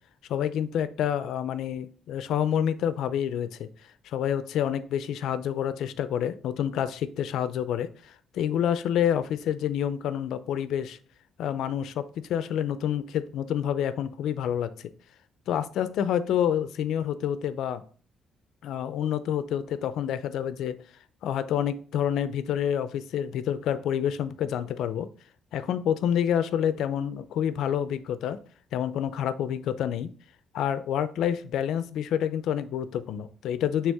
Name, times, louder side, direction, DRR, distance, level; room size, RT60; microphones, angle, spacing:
voice 1, 0.3-3.7 4.1-11.0 11.4-14.9 15.5-17.8 18.6-20.8 21.2-25.1 25.5-28.4 28.7-30.1 30.5-33.9, left 9 dB, 80° left, 13 dB, 0.5 m, -28 dB
9.1 x 3.4 x 3.5 m, 0.41 s
cardioid pair, 105°, 0 cm